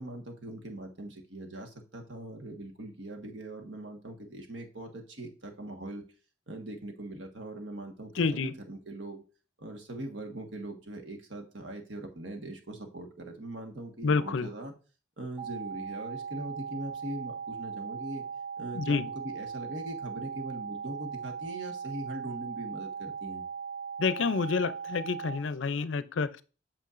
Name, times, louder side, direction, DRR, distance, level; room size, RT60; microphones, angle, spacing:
voice 1, 0.0-6.0 6.5-9.2 9.6-14.7 15.2-18.3 18.6-23.4, right 1 dB, 65° right, 1.4 m, -41 dB
voice 2, 8.2-8.5 14.0-14.5 18.7-19.1 24.0-26.4, left 4 dB, 70° left, 0.5 m, -28 dB
sound 1, 15.4-25.4, right 6 dB, 10° right, 0.8 m, -39 dB
8.4 x 7.2 x 2.5 m
head